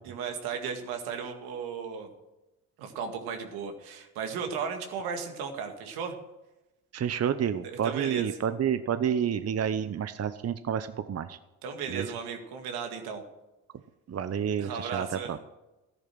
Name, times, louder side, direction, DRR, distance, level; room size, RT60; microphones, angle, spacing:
voice 1, 0.0-2.1 2.8-6.2 7.6-8.3 11.6-13.2 14.6-15.4, right 6 dB, 80° right, 5 dB, 2.1 m, -35 dB
voice 2, 6.9-11.4 11.9-12.1 14.1-15.4, right 8 dB, 40° right, 11 dB, 0.9 m, -29 dB
14.0 x 11.0 x 6.2 m, 1.0 s
hypercardioid pair, 55°, 37 cm